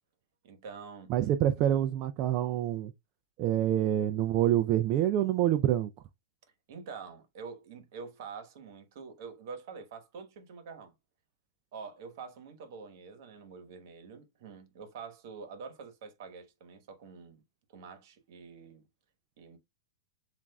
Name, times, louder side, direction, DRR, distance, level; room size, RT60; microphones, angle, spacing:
voice 1, 0.4-1.1 6.7-10.9 11.7-17.4 17.7-18.9 19.4-19.6, right 5 dB, 55° right, 1.2 m, -46 dB
voice 2, 1.1-2.9 3.4-5.9, right 12 dB, 35° right, 0.3 m, -26 dB
7.2 x 2.5 x 2.3 m
supercardioid pair, 150°, 2 cm